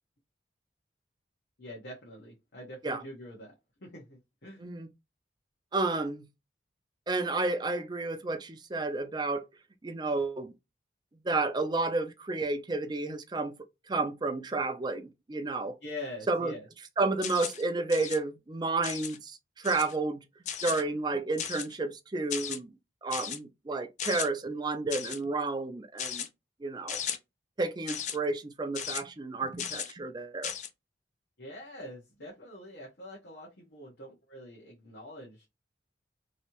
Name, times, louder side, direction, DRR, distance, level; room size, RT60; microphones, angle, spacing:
voice 1, 1.6-3.5 3.8-4.6 15.8-16.7 31.4-35.5, left 1 dB, 70° left, 1.1 m, -44 dB
voice 2, 5.7-6.2 7.1-9.4 9.8-10.5 11.2-13.5 13.9-15.7 16.3-16.5 17.0-20.2 20.6-22.7 23.0-26.3 26.6-27.0 27.6-30.5, right 3 dB, 25° right, 0.4 m, -31 dB
sound 1, 17.2-17.6 17.9-18.2 18.8-19.2 19.6-20.0 20.5-20.8 21.4-21.8 22.3-22.6 23.1-23.4 24.0-24.3 24.9-25.2 26.0-26.3 26.9-27.2 27.9-28.2 28.7-29.0 29.6-29.9 30.4-30.7, left 9 dB, 40° left, 0.4 m, -36 dB
3.1 x 2.7 x 2.9 m
head